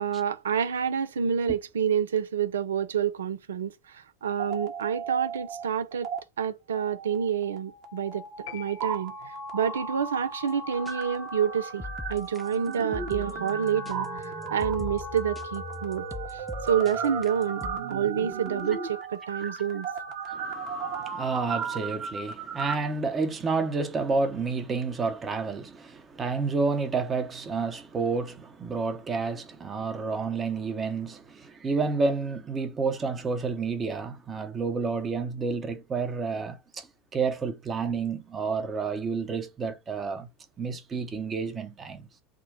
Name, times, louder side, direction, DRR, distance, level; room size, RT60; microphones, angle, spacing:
voice 1, 0.0-6.1 6.4-11.8 12.1-16.0 16.3-17.6 17.9-19.9, right 8 dB, 80° right, 0.5 m, -28 dB
sound 1, 4.2-5.6 5.9-6.2 6.7-22.7, right 4 dB, 45° right, 1.2 m, -36 dB
sound 2, 8.5-9.7, left 15 dB, 65° left, 0.4 m, -46 dB
sound 3, 10.5-10.6 10.9-11.0 11.4-17.8, left 3 dB, 5° left, 0.7 m, -40 dB
voice 2, 20.2-40.3 40.6-42.1, right 4 dB, 30° right, 0.9 m, -30 dB
3.7 x 2.2 x 3.8 m
hypercardioid pair, 80°, 0 cm